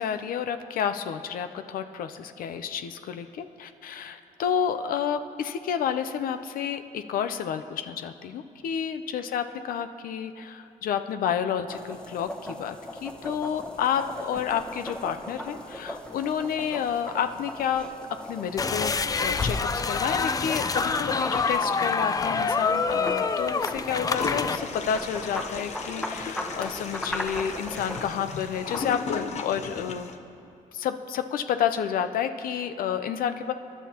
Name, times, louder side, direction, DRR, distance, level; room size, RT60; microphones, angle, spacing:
voice 1, 0.0-17.9 18.3-30.1 30.7-33.5, left 8 dB, 75° left, 9 dB, 0.6 m, -30 dB
sound 1, 11.7-29.3, left 1 dB, 5° left, 1.1 m, -39 dB
sound 2, 18.6-24.6, left 4 dB, 25° left, 0.5 m, -26 dB
Toilet flush, 24.1-30.1, left 5 dB, 50° left, 0.9 m, -36 dB
26.5 x 11.0 x 2.9 m, 2.8 s
cardioid pair, 115°, 15 cm